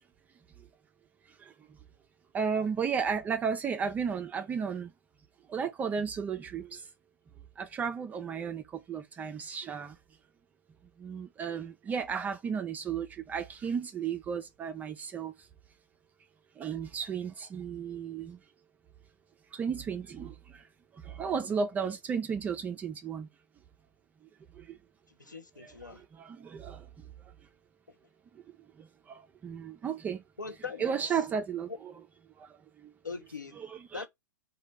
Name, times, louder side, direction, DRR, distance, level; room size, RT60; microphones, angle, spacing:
voice 1, 1.4-1.8 2.3-4.9 5.5-6.9 7.6-10.0 11.0-15.5 16.6-18.4 19.5-20.7 20.9-23.3 24.5-24.8 25.6-26.9 28.8-30.2 30.8-31.9 32.4-32.9 33.6-34.1, right 6 dB, 15° right, 0.3 m, -34 dB
voice 2, 25.2-26.0 30.4-31.0 31.7-31.8 33.0-33.6 33.9-34.1, left 4 dB, 80° left, 0.8 m, -41 dB
4.0 x 2.2 x 3.3 m
figure-of-eight pair, 105°, 10 cm